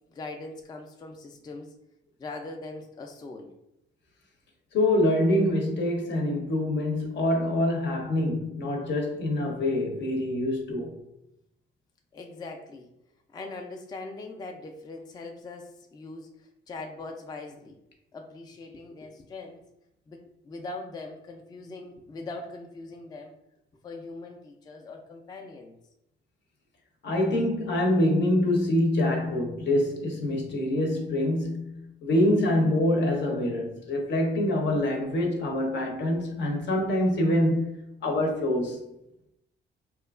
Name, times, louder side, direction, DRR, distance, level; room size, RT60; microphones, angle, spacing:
voice 1, 0.1-1.7 2.2-3.5 12.1-12.9 13.3-17.8 18.1-19.6 20.1-23.3 23.8-25.7, left 3 dB, 20° left, 0.3 m, -41 dB
voice 2, 4.7-11.0 27.0-38.9, left 1 dB, 65° left, 0.7 m, -25 dB
2.8 x 2.3 x 2.3 m
cardioid pair, 90°, 20 cm